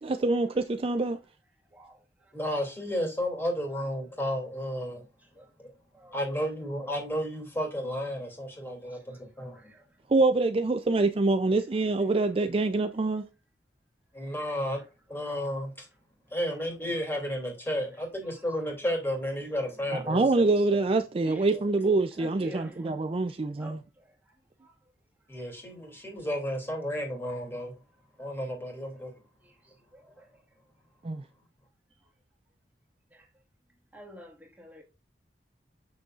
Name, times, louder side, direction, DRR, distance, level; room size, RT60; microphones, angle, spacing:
voice 1, 0.0-1.2 10.1-13.2 19.9-23.8 31.0-31.2, right 3 dB, 30° right, 0.4 m, -25 dB
voice 2, 2.3-5.0 5.6-5.7 6.1-9.7 14.1-14.8 15.1-15.9 16.3-20.5 21.5-21.7 25.3-27.7 28.2-29.1, equal, 15° left, 2.7 m, -32 dB
voice 3, 9.5-9.8 19.8-19.9 21.3-21.4 22.2-22.9 23.6-23.8 29.9-30.3 33.1-33.2 33.9-34.8, equal, 10° right, 2.0 m, -47 dB
7.0 x 6.3 x 2.4 m
head